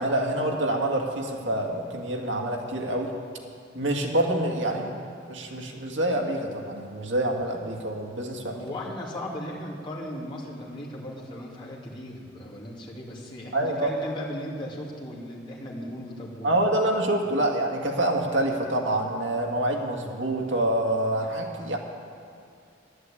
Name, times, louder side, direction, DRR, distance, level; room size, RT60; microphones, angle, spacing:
voice 1, 0.0-3.1 3.7-5.0 5.3-8.6 13.5-13.9 16.4-21.8, right 1 dB, 75° right, 1 dB, 2.0 m, -26 dB
voice 2, 8.5-16.7 17.2-17.3, left 1 dB, 25° left, -4 dB, 2.6 m, -37 dB
11.0 x 11.0 x 8.5 m, 2.5 s
head